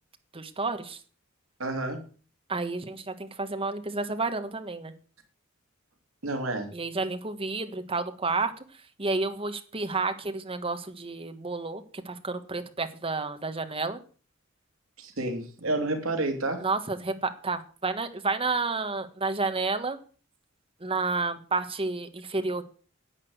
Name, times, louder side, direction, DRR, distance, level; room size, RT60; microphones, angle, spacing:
voice 1, 0.3-1.0 2.5-4.9 6.7-8.6 9.0-14.0 16.6-20.0 20.8-22.6, right 3 dB, 30° right, 8 dB, 1.5 m, -30 dB
voice 2, 1.6-2.0 6.2-6.7 15.0-16.7, right 2 dB, 80° right, 4 dB, 2.7 m, -30 dB
11.0 x 8.7 x 7.9 m, 0.40 s
head